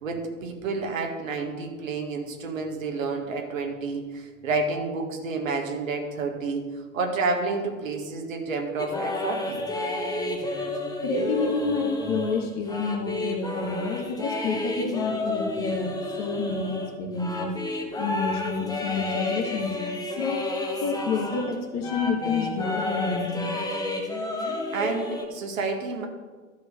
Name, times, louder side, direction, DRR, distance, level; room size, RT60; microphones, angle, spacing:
voice 1, 0.0-6.6 6.9-9.6 24.7-26.1, right 3 dB, 65° right, 3 dB, 2.0 m, -29 dB
sound 1, 8.8-21.6 21.8-25.2, left 2 dB, 10° left, 1.2 m, -31 dB
voice 2, 11.0-17.5 18.0-19.7 20.2-20.6 20.8-23.5, left 4 dB, 40° left, 3 dB, 1.7 m, -29 dB
12.5 x 4.6 x 6.8 m, 1.4 s
figure-of-eight pair, 95°, 43 cm